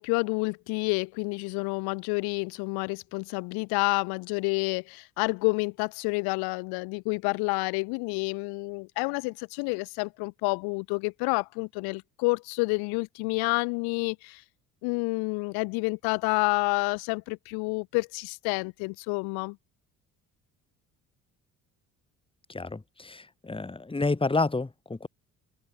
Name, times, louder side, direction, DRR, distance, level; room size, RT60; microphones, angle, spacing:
voice 1, 0.0-14.4 14.8-19.6, left 30 dB, 80° left, 1.5 m, -29 dB
voice 2, 22.5-25.1, left 3 dB, 15° left, 1.8 m, -29 dB
open air
hypercardioid pair, 65°, 37 cm